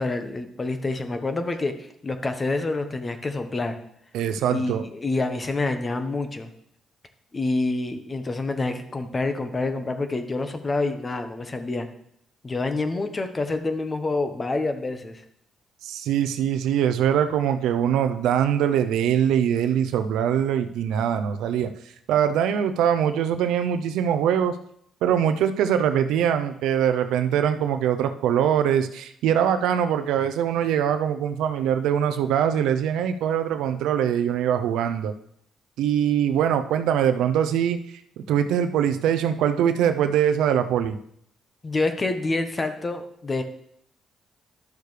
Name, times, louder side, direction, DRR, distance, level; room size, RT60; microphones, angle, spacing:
voice 1, 0.0-3.7 4.5-6.5 7.3-11.9 12.4-15.2 41.6-43.4, left 2 dB, 30° left, 7 dB, 1.1 m, -27 dB
voice 2, 4.1-4.9 15.8-21.7 22.1-24.6 25.0-35.1 35.8-37.8 38.2-41.0, right 9 dB, 90° right, 9 dB, 0.6 m, -22 dB
12.0 x 6.6 x 3.3 m, 0.70 s
cardioid pair, 90°, 0 cm